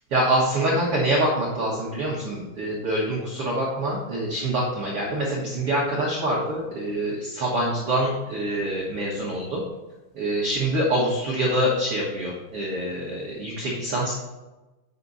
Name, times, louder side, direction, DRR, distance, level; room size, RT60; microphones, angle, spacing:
voice 1, 0.1-9.6 10.1-14.1, right 1 dB, 85° right, -5 dB, 1.2 m, -25 dB
9.5 x 6.0 x 4.1 m, 1.1 s
omnidirectional pair, 5.2 m